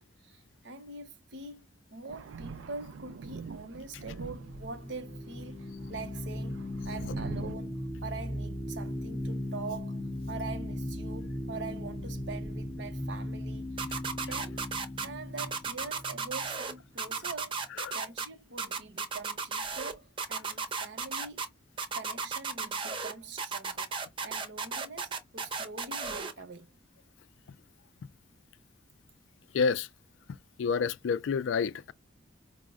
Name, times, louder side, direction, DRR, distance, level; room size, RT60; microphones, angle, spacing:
voice 1, 0.0-1.6 1.9-10.0 10.3-13.7 14.1-14.6 15.0-17.6 17.9-21.4 21.9-23.9 24.2-26.7, right 3 dB, 65° right, 0.7 m, -44 dB
Thunder, 2.1-5.1 5.6-7.6, right 4 dB, 85° right, 0.4 m, -43 dB
sound 1, 3.8-17.1, left 1 dB, 25° left, 0.6 m, -38 dB
sound 2, 13.8-15.1 15.4-16.7 17.0-18.3 18.6-19.9 20.2-21.5 21.8-23.1 23.4-26.3, right 5 dB, 25° right, 0.5 m, -34 dB
voice 2, 29.5-29.9 30.6-31.9, left 5 dB, 75° left, 0.3 m, -28 dB
4.7 x 2.1 x 2.4 m
head